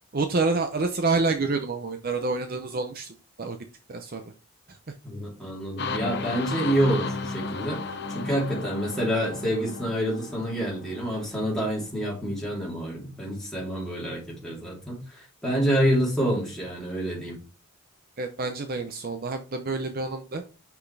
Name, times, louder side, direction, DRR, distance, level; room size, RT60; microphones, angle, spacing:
voice 1, 0.1-3.6 3.9-4.3 4.7-4.8 18.2-20.4, right 3 dB, 40° right, 0.6 m, -28 dB
voice 2, 5.0-17.4, equal, ahead, 3.0 m, -27 dB
sound 1, 5.8-11.5, left 3 dB, 50° left, 0.7 m, -34 dB
6.0 x 5.8 x 3.3 m
head